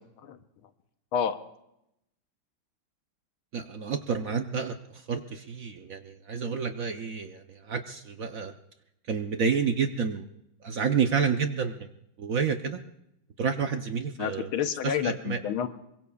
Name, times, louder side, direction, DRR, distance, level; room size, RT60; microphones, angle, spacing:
voice 1, 3.5-8.5 9.1-10.2 10.6-11.9 12.2-12.8 13.4-14.5 14.8-15.4, right 6 dB, 60° right, 6 dB, 0.9 m, -29 dB
voice 2, 14.2-15.7, left 8 dB, 85° left, 8 dB, 1.7 m, -29 dB
26.0 x 23.0 x 2.4 m, 0.82 s
omnidirectional pair, 2.3 m